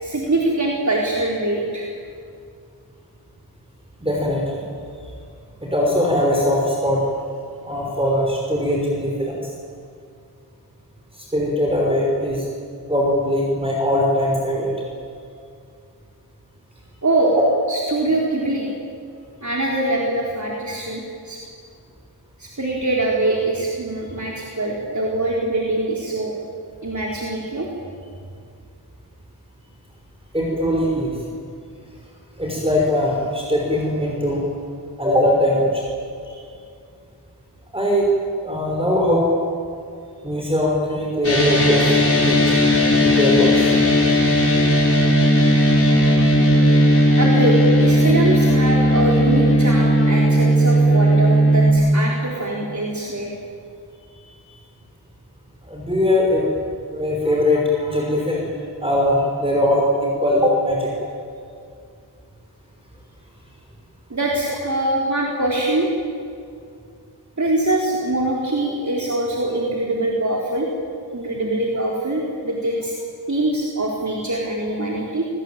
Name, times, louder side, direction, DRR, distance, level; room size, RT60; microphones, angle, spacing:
voice 1, 0.0-1.9 17.0-17.4 17.7-18.7 19.4-21.4 22.4-26.3 26.8-27.7 36.3-36.4 47.2-53.3 54.1-54.6 64.1-65.9 67.4-70.7 71.1-72.9 73.3-75.3, right 2 dB, 45° right, -3 dB, 4.2 m, -23 dB
voice 2, 4.0-4.7 5.6-7.0 7.6-9.4 11.2-12.5 12.9-14.7 30.3-31.2 32.4-34.5 35.0-35.8 37.7-38.1 38.4-39.3 40.2-41.9 42.2-42.5 42.9-43.8 55.7-56.5 56.9-58.5 58.8-61.0, left 1 dB, 15° right, -2 dB, 5.7 m, -20 dB
sound 1, 41.2-51.7, equal, 35° left, 6.0 m, -16 dB
28.5 x 20.5 x 9.3 m, 2.4 s
wide cardioid pair, 75°, 40 cm